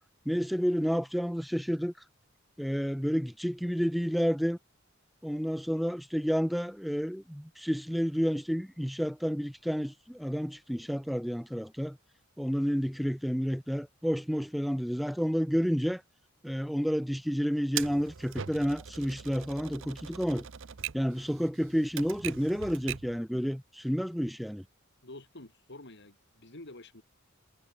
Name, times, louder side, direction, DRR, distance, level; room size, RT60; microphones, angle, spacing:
voice 1, 0.3-1.9 2.6-4.6 5.2-12.0 12.4-16.0 16.4-20.5 20.9-24.6, equal, ahead, 0.6 m, -30 dB
Typewriter, 17.8-23.2, right 9 dB, 65° right, 0.7 m, -41 dB
voice 2, 25.0-27.0, left 2 dB, 60° left, 3.6 m, -48 dB
head